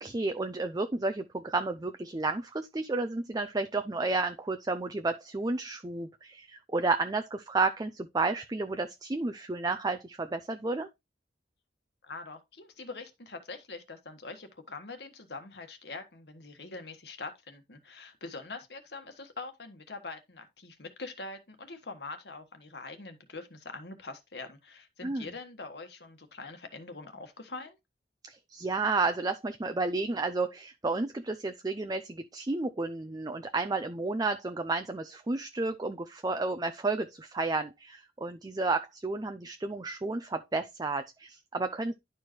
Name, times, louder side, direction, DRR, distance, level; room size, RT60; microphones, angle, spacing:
voice 1, 0.0-10.9 25.0-25.3 28.2-41.9, right 3 dB, 20° right, 0.5 m, -31 dB
voice 2, 12.0-27.8, left 3 dB, 65° left, 1.5 m, -44 dB
11.0 x 4.5 x 3.1 m
head